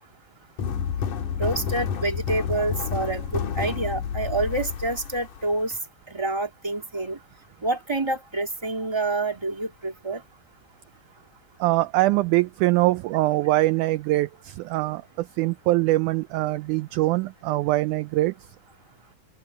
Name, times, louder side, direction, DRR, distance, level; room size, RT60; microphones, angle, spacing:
sound 1, 0.6-5.8, left 7 dB, 70° left, 3.1 m, -29 dB
voice 1, 1.4-5.7 6.1-7.2 7.6-10.2, right 2 dB, 10° right, 2.7 m, -27 dB
voice 2, 11.6-18.3, right 18 dB, 80° right, 1.8 m, -23 dB
open air
omnidirectional pair, 3.9 m